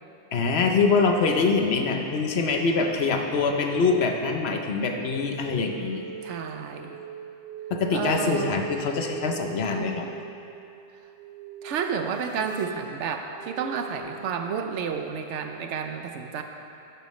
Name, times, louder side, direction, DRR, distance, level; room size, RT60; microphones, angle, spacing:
voice 1, 0.3-6.0 7.7-10.1, left 4 dB, 65° left, 3 dB, 1.0 m, -24 dB
sound 1, 4.8-14.0, right 7 dB, 45° right, 1.0 m, -40 dB
voice 2, 6.2-7.0 7.9-8.6 11.6-16.4, right 6 dB, 90° right, 5 dB, 1.0 m, -31 dB
11.5 x 8.9 x 3.1 m, 2.7 s
omnidirectional pair, 1.2 m